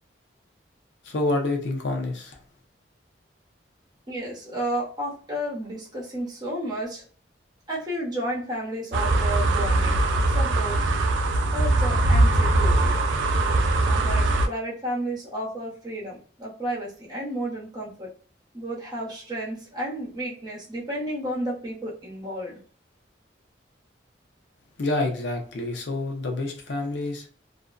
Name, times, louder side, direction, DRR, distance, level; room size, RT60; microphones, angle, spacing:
voice 1, 1.0-2.4 24.8-27.3, left 2 dB, 75° left, 3 dB, 0.6 m, -28 dB
voice 2, 4.1-7.0 7.7-10.0 10.3-10.8 11.5-12.9 13.8-18.1 18.5-22.6, right 1 dB, 25° right, -6 dB, 0.8 m, -32 dB
sound 1, 8.9-14.5, right 2 dB, 90° right, 0.4 m, -21 dB
2.5 x 2.1 x 2.4 m, 0.42 s
head